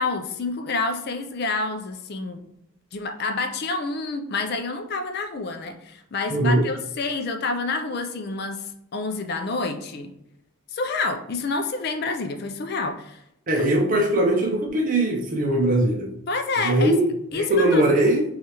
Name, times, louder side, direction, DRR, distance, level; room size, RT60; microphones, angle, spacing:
voice 1, 0.0-2.5 2.9-10.1 10.7-13.2 16.3-16.9 17.3-18.2, left 3 dB, 50° left, 6 dB, 0.4 m, -28 dB
voice 2, 6.3-6.6 13.5-16.2 16.6-17.1 17.3-18.2, right 1 dB, 40° right, 0 dB, 0.6 m, -20 dB
6.0 x 2.4 x 2.9 m, 0.78 s
head